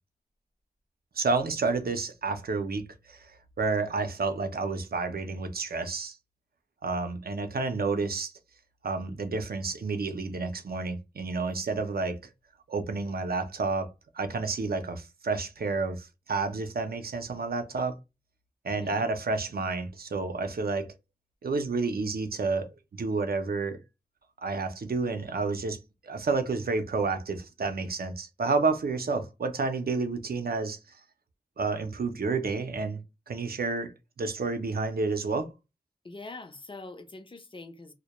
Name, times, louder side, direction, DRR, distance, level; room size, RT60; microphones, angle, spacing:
voice 1, 1.2-3.3 3.6-6.2 6.8-8.3 8.8-12.2 12.7-13.9 14.1-17.9 18.6-20.9 21.4-22.7 23.0-23.8 24.4-30.8 31.6-33.0 33.3-35.5, right 4 dB, 70° right, 0.5 m, -30 dB
voice 2, 18.7-19.0 36.0-37.9, left 3 dB, 30° left, 0.5 m, -44 dB
2.2 x 2.1 x 2.8 m
wide cardioid pair, 65°, 16 cm